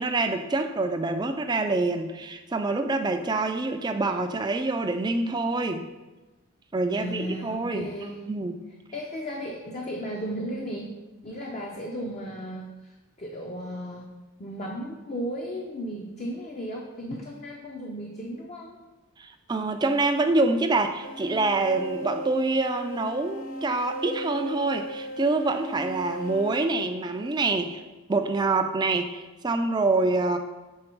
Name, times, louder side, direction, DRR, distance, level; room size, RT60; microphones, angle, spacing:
voice 1, 0.0-5.9 6.7-8.6 19.2-27.8 28.1-30.4, right 3 dB, 20° right, 6 dB, 0.3 m, -26 dB
voice 2, 6.9-8.3 8.9-10.9 11.2-14.1 14.4-18.8, equal, 30° left, -1 dB, 0.5 m, -35 dB
sound 1, 21.0-27.5, right 1 dB, 80° left, 0.6 m, -37 dB
6.4 x 3.9 x 4.5 m, 1.1 s
head